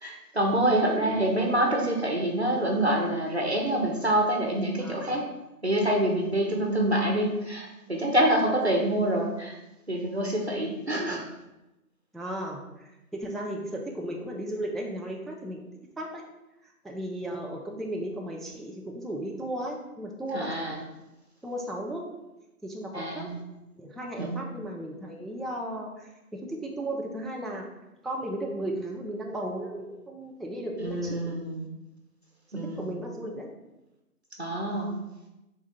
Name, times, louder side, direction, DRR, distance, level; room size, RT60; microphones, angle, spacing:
voice 1, 0.0-5.2 5.6-9.5 9.9-11.2 20.3-20.8 22.9-23.4 24.2-24.4 30.8-31.7 32.5-32.9 34.4-34.9, right 1 dB, 45° right, 0 dB, 0.7 m, -26 dB
voice 2, 0.7-1.4 4.8-5.2 10.9-11.2 12.1-15.6 16.0-16.2 16.6-20.6 21.4-22.1 22.6-23.3 23.7-27.6 28.0-31.3 32.8-33.5, right 1 dB, ahead, -1 dB, 0.4 m, -35 dB
3.5 x 3.5 x 4.1 m, 0.96 s
figure-of-eight pair, 180°, 46 cm